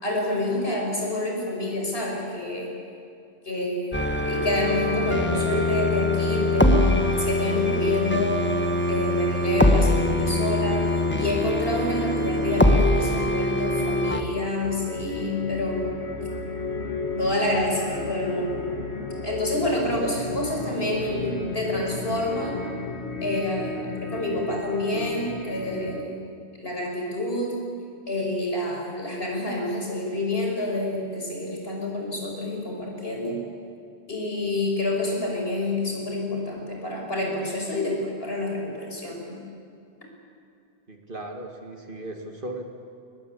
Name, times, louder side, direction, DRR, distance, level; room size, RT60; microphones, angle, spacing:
voice 1, 0.0-2.7 3.4-8.4 8.9-10.8 11.2-16.0 17.2-18.6 19.2-22.6 23.2-26.2 26.6-27.5 28.1-33.4 34.1-39.4, left 1 dB, 65° left, 0 dB, 5.9 m, -28 dB
sound 1, 3.9-14.2, left 1 dB, 10° left, 1.3 m, -23 dB
sound 2, 7.8-26.0, left 3 dB, 90° left, 1.8 m, -35 dB
voice 2, 40.9-42.6, right 1 dB, 55° right, 3 dB, 2.3 m, -37 dB
23.0 x 20.0 x 8.7 m, 2.5 s
omnidirectional pair, 1.1 m